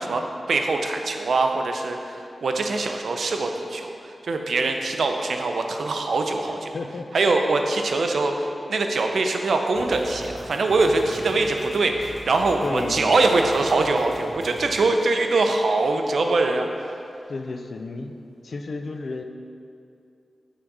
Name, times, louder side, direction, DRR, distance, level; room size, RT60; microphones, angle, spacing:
voice 1, 0.0-6.7 7.1-17.0, right 3 dB, 80° right, 4 dB, 0.5 m, -23 dB
voice 2, 6.7-7.1 11.3-11.5 12.6-13.2 17.3-18.2 18.4-19.2, left 3 dB, 65° left, 5 dB, 0.4 m, -32 dB
sound 1, 9.7-14.8, right 1 dB, 20° left, 0.8 m, -41 dB
6.2 x 3.8 x 4.6 m, 2.5 s
wide cardioid pair, 125°, 0 cm